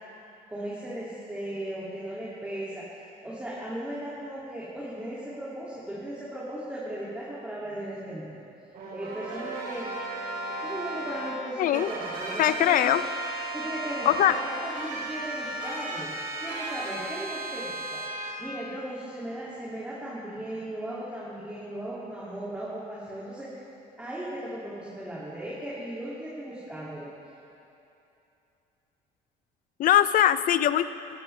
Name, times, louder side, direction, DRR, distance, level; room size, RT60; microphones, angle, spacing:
voice 1, 0.5-8.4 8.9-9.9 10.6-13.0 13.5-16.1 16.4-18.0 18.4-23.5 24.0-27.1, right 1 dB, 10° right, -8 dB, 2.3 m, -37 dB
sound 1, 8.7-11.3 11.7-18.3, right 2 dB, 65° right, 3.2 m, -35 dB
voice 2, 11.6-11.9 12.4-13.0 14.1-14.4 29.8-30.9, left 11 dB, 55° left, 14 dB, 0.5 m, -21 dB
15.5 x 13.0 x 3.3 m, 2.8 s
cardioid pair, 110°, 17 cm